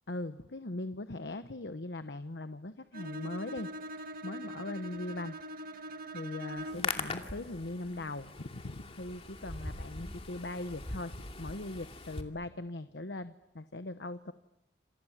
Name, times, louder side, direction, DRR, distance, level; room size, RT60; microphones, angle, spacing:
voice 1, 0.1-5.4 6.1-11.1 11.4-14.3, left 2 dB, 70° left, 10 dB, 1.1 m, -40 dB
Bowed string instrument, 2.9-7.0, right 1 dB, 55° right, 1.7 m, -42 dB
Hands, 6.5-12.2, left 3 dB, 35° left, 2.7 m, -41 dB
28.5 x 28.5 x 7.3 m, 0.89 s
head